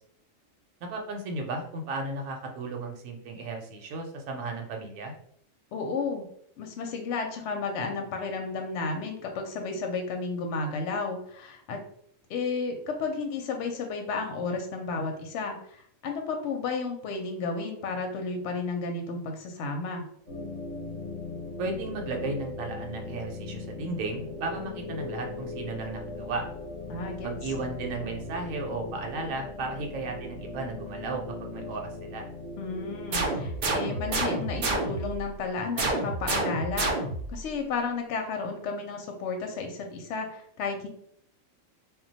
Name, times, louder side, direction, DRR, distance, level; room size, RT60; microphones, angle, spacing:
voice 1, 0.8-5.1 21.6-26.4 27.2-32.2, right 3 dB, 80° right, 2 dB, 0.9 m, -34 dB
voice 2, 5.7-6.3 6.6-11.8 12.3-20.1 26.9-27.3 32.6-37.0 37.3-40.9, left 4 dB, 65° left, 3 dB, 0.8 m, -32 dB
sound 1, 20.3-35.2, left 2 dB, 35° left, 0.8 m, -39 dB
sound 2, 33.1-35.2 35.8-37.3, right 2 dB, 55° right, 0.6 m, -29 dB
2.2 x 2.2 x 3.9 m, 0.66 s
omnidirectional pair, 1.4 m